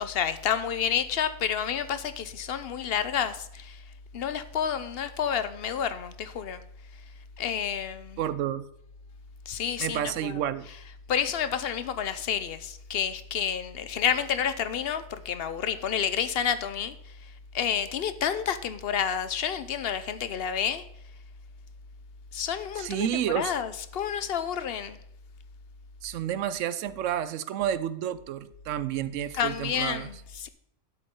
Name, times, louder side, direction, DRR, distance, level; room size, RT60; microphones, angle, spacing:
voice 1, 0.0-3.8 4.1-6.6 7.4-8.2 9.5-10.4 11.1-16.9 17.5-20.8 22.3-25.0 29.3-30.5, left 8 dB, 55° left, 0.9 m, -29 dB
voice 2, 8.2-8.7 9.8-10.7 22.8-23.5 26.0-30.1, right 10 dB, 85° right, 1.0 m, -30 dB
11.0 x 8.0 x 3.7 m
omnidirectional pair, 1.3 m